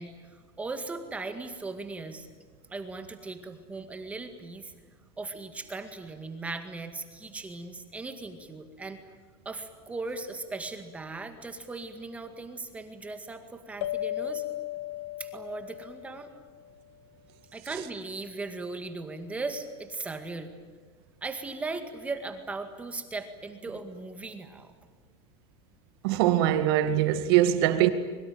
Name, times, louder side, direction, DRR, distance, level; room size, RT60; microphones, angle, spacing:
voice 1, 0.0-2.3 2.7-4.7 5.2-9.0 9.5-14.4 15.2-16.3 17.5-20.5 21.2-24.8, right 3 dB, 10° right, 2.0 m, -38 dB
sound 1, 13.8-16.8, left 14 dB, 60° left, 0.9 m, -36 dB
voice 2, 26.0-27.9, right 12 dB, 65° right, 2.2 m, -22 dB
24.0 x 23.0 x 9.0 m
supercardioid pair, 170°, 14 cm